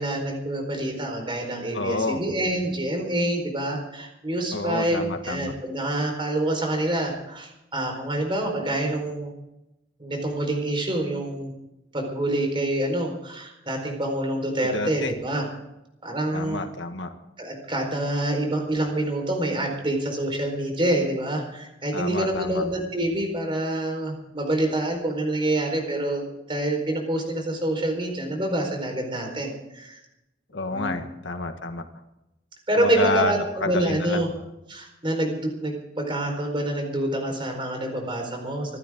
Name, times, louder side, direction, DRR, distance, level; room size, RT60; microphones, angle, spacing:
voice 1, 0.0-9.3 10.0-11.5 11.9-15.5 16.0-16.7 17.4-30.0 30.5-31.0 32.7-34.3 34.7-38.8, right 1 dB, 25° right, 3 dB, 4.5 m, -27 dB
voice 2, 1.7-2.2 4.5-5.5 14.7-15.1 16.3-17.1 21.9-22.6 30.5-31.8 32.8-34.3, left 3 dB, 85° left, 6 dB, 1.7 m, -29 dB
26.5 x 12.0 x 3.8 m, 0.90 s
head